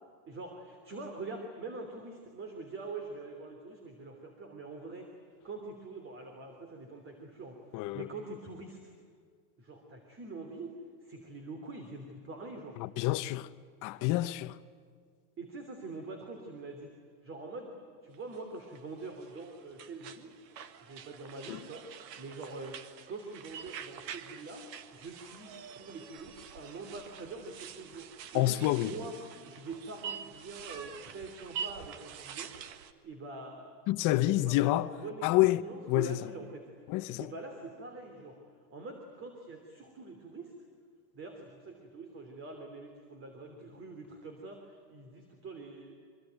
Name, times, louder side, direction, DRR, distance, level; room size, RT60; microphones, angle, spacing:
voice 1, 0.3-5.1 5.4-7.7 7.9-8.8 9.6-12.8 15.4-16.9 17.2-17.7 18.0-20.4 20.8-29.1 29.5-32.5 33.0-33.7 34.1-36.7 37.2-38.4 38.7-40.5 41.1-45.9, right 3 dB, 25° right, 3.3 m, -44 dB
voice 2, 7.7-8.1 12.8-13.5 13.8-14.6 21.5-21.6 28.3-29.1 33.9-34.9 35.2-35.6 35.9-36.2 36.9-37.3, left 17 dB, 40° left, 0.9 m, -28 dB
sound 1, 18.1-32.9, right 8 dB, 90° right, 1.9 m, -46 dB
25.5 x 24.5 x 9.1 m
supercardioid pair, 155°, 49 cm